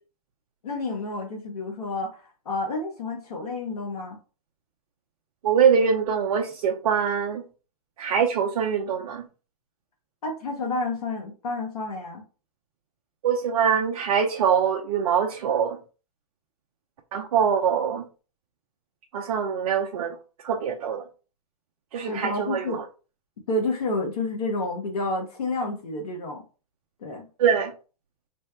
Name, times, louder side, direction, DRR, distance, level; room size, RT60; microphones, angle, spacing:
voice 1, 0.6-4.2 10.2-12.2 22.1-22.8 23.5-26.4 27.0-27.3, left 2 dB, 80° left, 1.3 m, -30 dB
voice 2, 5.4-7.5 8.0-9.3 13.2-15.8 17.1-18.1 19.1-20.2 20.4-21.0 21.9-22.8 27.4-27.7, right 7 dB, 65° right, 0.6 m, -23 dB
3.4 x 2.2 x 4.3 m
hypercardioid pair, 115°, 19 cm